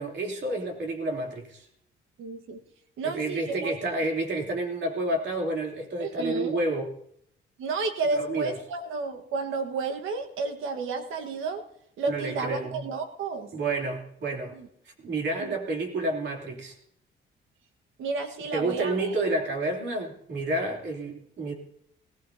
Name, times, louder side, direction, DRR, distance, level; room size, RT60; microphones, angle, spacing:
voice 1, 0.0-1.6 3.0-6.9 8.1-8.5 12.1-12.9 13.5-14.6 15.0-16.7 18.5-21.5, right 2 dB, 60° right, 1 dB, 3.1 m, -30 dB
voice 2, 2.2-2.6 3.0-3.7 6.0-6.5 7.6-11.6 12.0-13.5 14.5-14.7 18.0-19.1, right 4 dB, 80° right, 5 dB, 1.5 m, -31 dB
20.0 x 16.5 x 2.8 m, 0.71 s
cardioid pair, 90°, 20 cm